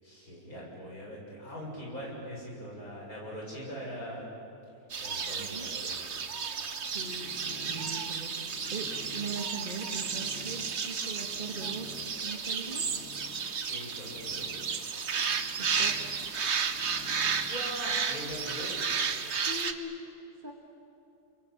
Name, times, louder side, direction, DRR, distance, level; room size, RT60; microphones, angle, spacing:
voice 1, 0.0-4.3 5.0-5.9 13.7-14.5 17.5-18.8, equal, 70° left, -3 dB, 7.8 m, -41 dB
sound 1, 4.9-19.7, right 6 dB, 50° right, 1.3 m, -33 dB
voice 2, 6.9-12.9 15.6-16.1 19.4-20.0 20.4-20.5, right 3 dB, 35° right, 2 dB, 2.0 m, -41 dB
sound 2, 7.0-17.5, left 2 dB, 45° left, 4.4 m, -50 dB
30.0 x 22.5 x 8.7 m, 2.8 s
omnidirectional pair, 1.6 m